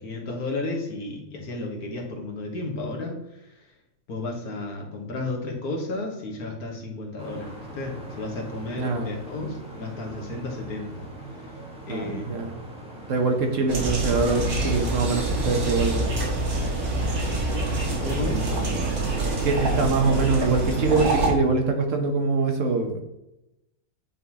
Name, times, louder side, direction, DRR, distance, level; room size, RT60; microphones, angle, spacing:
voice 1, 0.0-3.5 4.1-11.1 11.9-12.5 18.0-18.7, left 2 dB, 75° left, 1 dB, 1.8 m, -33 dB
sound 1, 7.2-16.3, right 1 dB, 5° right, 1.3 m, -41 dB
voice 2, 8.8-9.2 11.9-12.6 13.1-16.1 19.4-23.0, right 4 dB, 60° right, 4 dB, 1.2 m, -24 dB
sound 2, 13.7-21.3, right 2 dB, 80° right, 2.3 m, -26 dB
9.2 x 3.8 x 2.9 m, 0.90 s
omnidirectional pair, 1.6 m